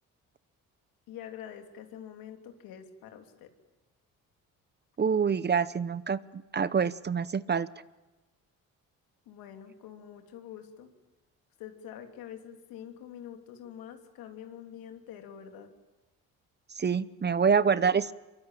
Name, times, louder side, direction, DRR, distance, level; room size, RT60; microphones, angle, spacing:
voice 1, 1.1-3.5 9.3-10.9 11.6-15.7, left 9 dB, 80° left, 6 dB, 3.0 m, -46 dB
voice 2, 5.0-7.7 16.8-18.1, right 6 dB, 30° right, 18 dB, 0.8 m, -26 dB
24.0 x 22.5 x 9.0 m, 1.1 s
supercardioid pair, 80°, 35 cm